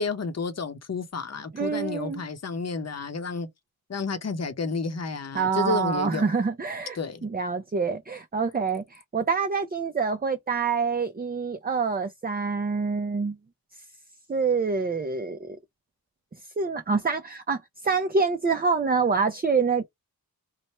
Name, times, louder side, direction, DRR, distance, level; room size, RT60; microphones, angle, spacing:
voice 1, 0.0-3.5 3.9-6.3 6.9-7.3, left 4 dB, 40° left, 0.8 m, -31 dB
voice 2, 1.5-2.2 5.3-13.4 14.3-15.6 16.6-19.9, right 5 dB, 25° right, 0.5 m, -26 dB
3.2 x 2.1 x 4.2 m
wide cardioid pair, 70°, 39 cm